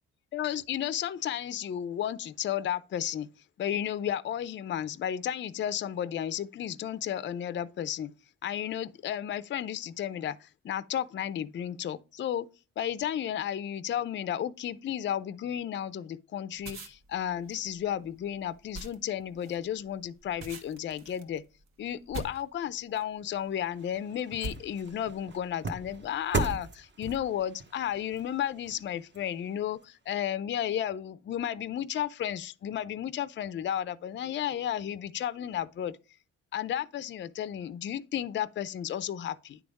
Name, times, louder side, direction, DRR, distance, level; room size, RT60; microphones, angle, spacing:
voice 1, 0.3-3.3 3.6-8.1 8.4-12.5 12.8-21.4 21.8-36.0 36.5-39.6, left 10 dB, 40° left, 0.5 m, -33 dB
sound 1, 16.5-23.2 23.8-24.0 24.4-25.1, right 2 dB, 60° right, 1.4 m, -43 dB
sound 2, 23.4-29.8 30.3-30.4, right 3 dB, 40° right, 1.0 m, -38 dB
9.6 x 3.5 x 5.1 m
cardioid pair, 90°, 30 cm